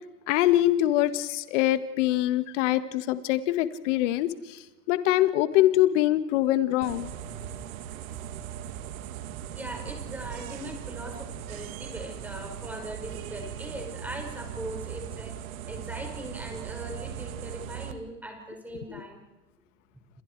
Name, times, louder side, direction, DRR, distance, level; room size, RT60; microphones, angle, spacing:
voice 1, 0.3-4.6 4.9-7.1 18.9-19.0, left 14 dB, 45° left, 11 dB, 1.8 m, -24 dB
sound 1, 6.8-17.9, right 10 dB, 55° right, 2.5 m, -39 dB
voice 2, 9.5-15.4 15.7-19.2, right 1 dB, 5° right, 3 dB, 5.5 m, -40 dB
28.0 x 27.5 x 4.8 m, 1.1 s
hypercardioid pair, 135°, 49 cm